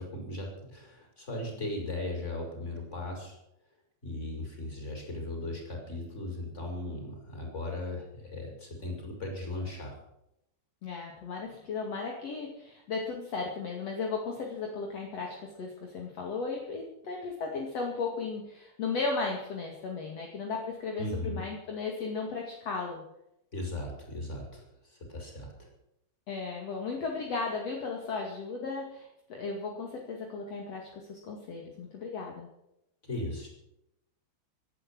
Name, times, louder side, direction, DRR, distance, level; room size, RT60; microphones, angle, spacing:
voice 1, 0.0-3.4 4.0-10.0 21.0-21.4 23.5-25.7 33.1-33.5, left 1 dB, 15° left, 1 dB, 5.4 m, -37 dB
voice 2, 10.8-23.0 26.3-32.5, left 4 dB, 45° left, 0 dB, 2.4 m, -35 dB
17.5 x 12.0 x 6.2 m, 0.82 s
omnidirectional pair, 5.7 m